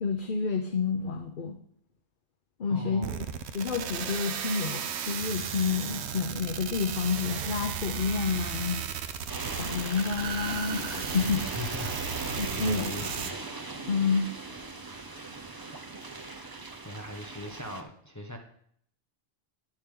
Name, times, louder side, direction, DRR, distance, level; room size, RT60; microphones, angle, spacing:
voice 1, 0.0-1.6 2.6-3.3 3.5-8.8 9.6-11.4 12.4-13.2 13.9-14.3, left 5 dB, 55° left, 4 dB, 0.9 m, -29 dB
voice 2, 2.7-3.2 11.2-13.4 16.8-18.4, left 1 dB, 15° left, 2 dB, 1.0 m, -40 dB
sound 1, 3.0-13.3, right 8 dB, 90° right, 1.0 m, -35 dB
sound 2, 9.3-17.8, right 3 dB, 25° right, 0.8 m, -39 dB
10.0 x 10.0 x 3.8 m, 0.65 s
omnidirectional pair, 1.1 m